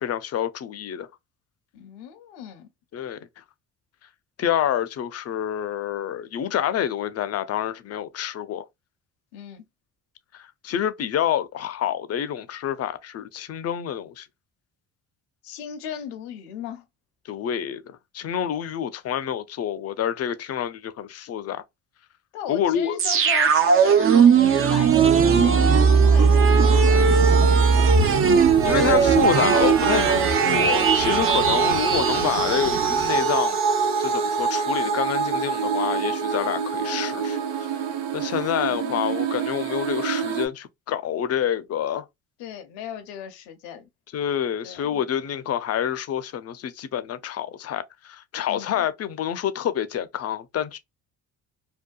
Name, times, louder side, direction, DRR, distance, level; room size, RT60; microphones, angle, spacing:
voice 1, 0.0-1.1 2.9-3.4 4.4-8.7 10.3-14.3 17.3-21.6 22.5-23.0 28.6-33.6 34.0-37.7 38.1-42.1 44.1-50.8, left 9 dB, 40° left, 0.5 m, -27 dB
voice 2, 1.7-2.7 9.3-9.7 15.4-16.9 22.3-27.0 38.7-39.2 42.4-43.9 44.6-45.0 48.5-48.9, left 9 dB, 80° left, 0.7 m, -37 dB
sound 1, 23.0-33.8 34.1-34.2, right 6 dB, 35° right, 0.4 m, -19 dB
sound 2, 24.8-33.4, right 5 dB, 50° right, 0.8 m, -31 dB
sound 3, 25.3-40.5, right 5 dB, 80° right, 0.6 m, -26 dB
2.7 x 2.2 x 2.2 m
supercardioid pair, 60°, 42 cm